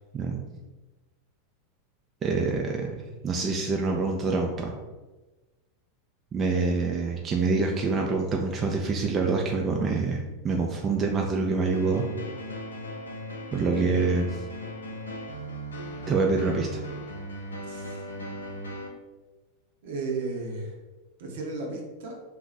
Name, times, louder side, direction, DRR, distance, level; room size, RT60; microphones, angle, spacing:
voice 1, 2.2-4.7 6.3-12.0 13.5-14.3 16.1-16.8, right 4 dB, 30° right, 0 dB, 0.4 m, -26 dB
sound 1, 11.7-18.9, equal, 90° left, 0.5 m, -37 dB
voice 2, 17.7-18.0 19.8-20.7 21.2-22.2, right 3 dB, 65° right, 1 dB, 0.7 m, -34 dB
2.5 x 2.3 x 3.9 m, 1.2 s
hypercardioid pair, 95°, 0 cm